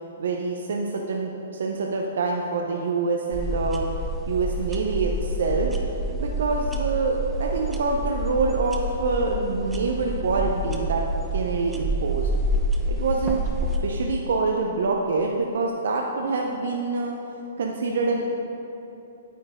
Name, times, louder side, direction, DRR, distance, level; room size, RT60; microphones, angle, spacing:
voice 1, 0.2-3.9 4.3-5.7 6.2-11.0 11.3-12.3 12.9-17.1 17.6-18.2, right 3 dB, 65° right, 1 dB, 0.7 m, -26 dB
sound 1, 3.3-13.8, right 1 dB, 10° right, 0.8 m, -28 dB
9.3 x 8.7 x 3.7 m, 3.0 s
hypercardioid pair, 120°, 0 cm